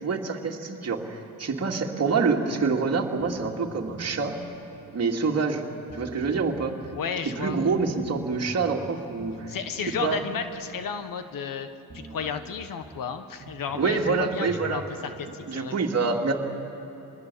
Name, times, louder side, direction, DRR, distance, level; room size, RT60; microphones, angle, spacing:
voice 1, 0.0-4.4 4.9-5.6 5.9-6.8 7.2-9.5 10.0-10.2 13.7-14.8 15.5-16.3, right 4 dB, 40° right, 1 dB, 2.4 m, -26 dB
sound 1, 3.2-5.4 5.9-6.7 7.4-11.5 11.9-12.7 13.4-15.2, right 1 dB, 20° right, 2.6 m, -45 dB
voice 2, 6.9-7.6 9.5-11.7 11.9-15.7, left 6 dB, 60° left, 9 dB, 1.3 m, -33 dB
26.5 x 20.0 x 7.0 m, 2.9 s
cardioid pair, 95°, 38 cm